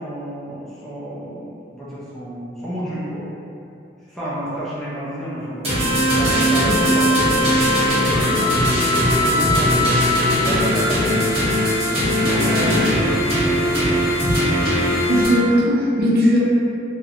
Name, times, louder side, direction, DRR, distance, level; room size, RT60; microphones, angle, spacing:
voice 1, 0.0-3.3 4.1-7.4 7.7-9.9 10.4-11.3 11.9-13.7, equal, ahead, -10 dB, 0.4 m, -29 dB
sound 1, 5.6-15.3, equal, 35° right, 1.0 m, -19 dB
voice 2, 15.1-16.4, equal, 55° right, -6 dB, 0.5 m, -17 dB
3.0 x 2.1 x 2.4 m, 2.7 s
head